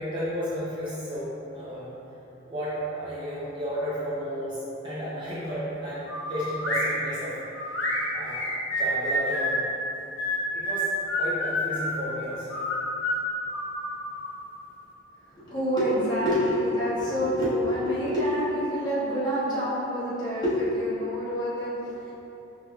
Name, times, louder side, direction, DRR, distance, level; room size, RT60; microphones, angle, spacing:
voice 1, 0.0-1.9 2.4-7.4 8.1-8.4 8.8-9.6 10.5-10.9 11.2-12.5 15.9-16.0, equal, 25° right, -10 dB, 0.6 m, -33 dB
sound 1, 6.1-6.9 7.5-9.6 10.2-12.0 12.5-14.4, left 1 dB, 65° left, 0.9 m, -28 dB
voice 2, 15.3-22.1, equal, 20° left, -11 dB, 1.2 m, -27 dB
5.1 x 3.2 x 2.3 m, 2.9 s
head